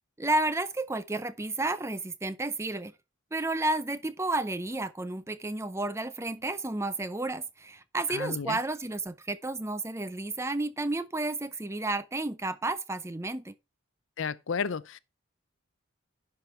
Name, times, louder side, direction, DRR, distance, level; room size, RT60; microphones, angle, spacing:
voice 1, 0.2-2.9 3.3-13.5, right 2 dB, 15° right, 0.5 m, -31 dB
voice 2, 8.1-8.6 14.2-15.0, left 5 dB, 65° left, 0.5 m, -32 dB
10.5 x 5.1 x 4.3 m
head